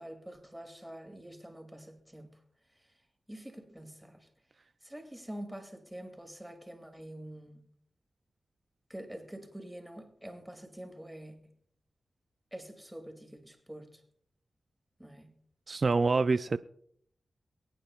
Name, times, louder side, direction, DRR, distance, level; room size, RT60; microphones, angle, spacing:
voice 1, 0.0-2.4 3.3-4.3 4.8-7.7 8.9-11.5 12.5-14.0 15.0-15.3, right 1 dB, 5° right, 2.2 m, -46 dB
voice 2, 15.7-16.6, right 3 dB, 55° right, 0.4 m, -26 dB
23.0 x 9.0 x 2.3 m
cardioid pair, 50°, 0 cm